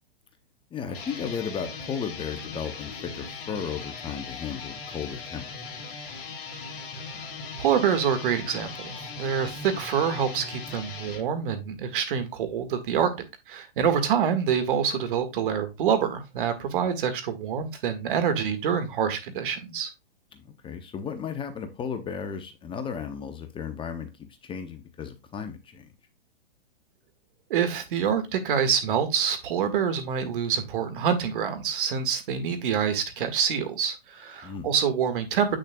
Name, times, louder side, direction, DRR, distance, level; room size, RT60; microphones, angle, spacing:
voice 1, 0.7-5.4 13.8-13.9 20.3-24.1 24.4-25.9 34.4-34.7, left 7 dB, 15° left, 0.8 m, -34 dB
sound 1, 0.8-11.2, left 4 dB, 55° left, 2.6 m, -39 dB
voice 2, 7.6-13.1 13.5-19.9 27.5-35.6, right 7 dB, 55° right, 1.8 m, -26 dB
8.4 x 6.5 x 2.3 m
hypercardioid pair, 120°, 31 cm